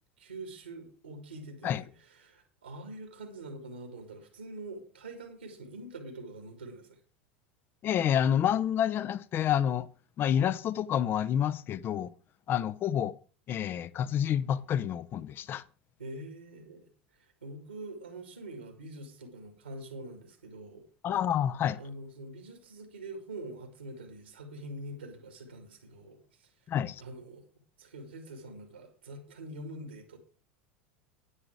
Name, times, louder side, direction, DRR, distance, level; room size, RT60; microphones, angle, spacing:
voice 1, 0.2-7.0 16.0-20.9 21.8-26.5 27.0-27.5 27.8-30.2, right 1 dB, 85° right, 2.7 m, -45 dB
voice 2, 7.8-9.9 10.2-12.1 12.5-13.1 13.5-15.6 21.0-21.8 26.7-27.0, left 9 dB, 35° left, 0.7 m, -28 dB
10.0 x 9.8 x 4.9 m
figure-of-eight pair, 80°, 6 cm